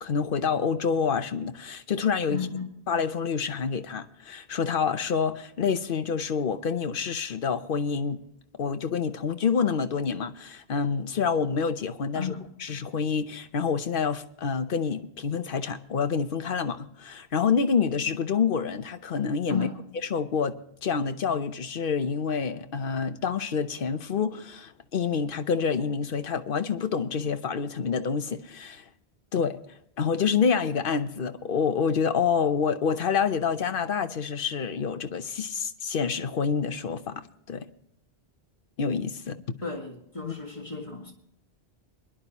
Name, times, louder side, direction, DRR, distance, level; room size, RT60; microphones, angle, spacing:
voice 1, 0.0-2.4 2.9-8.2 8.6-12.3 12.6-19.7 20.1-20.6 20.8-28.8 29.3-29.6 30.0-37.7 38.8-39.4 40.2-40.3, left 6 dB, 60° left, 1.0 m, -27 dB
voice 2, 2.3-2.7 12.1-12.4 19.5-19.8 39.6-41.1, left 5 dB, 30° left, 1.9 m, -33 dB
23.5 x 11.0 x 3.0 m
omnidirectional pair, 1.1 m